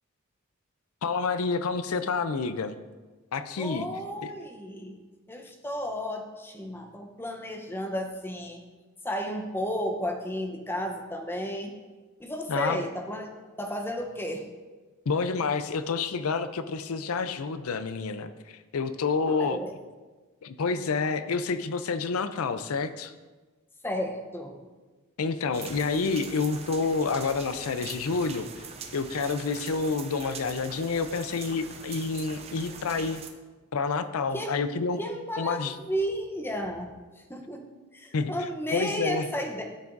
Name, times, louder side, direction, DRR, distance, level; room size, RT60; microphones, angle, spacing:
voice 1, 1.0-2.8 3.3-3.9 4.2-4.3 12.5-12.8 15.1-19.6 20.4-23.1 25.2-28.7 28.9-33.2 33.7-35.0 35.4-35.8 38.1-39.3, left 4 dB, 80° left, 11 dB, 0.5 m, -29 dB
voice 2, 3.6-5.0 5.3-8.6 9.0-11.7 12.2-14.5 19.3-19.7 23.8-24.6 34.3-34.6 35.0-37.6 37.9-39.6, equal, 10° left, 2 dB, 0.7 m, -33 dB
sound 1, 25.5-33.3, right 5 dB, 30° right, 0.5 m, -43 dB
13.0 x 5.8 x 2.6 m, 1.3 s
head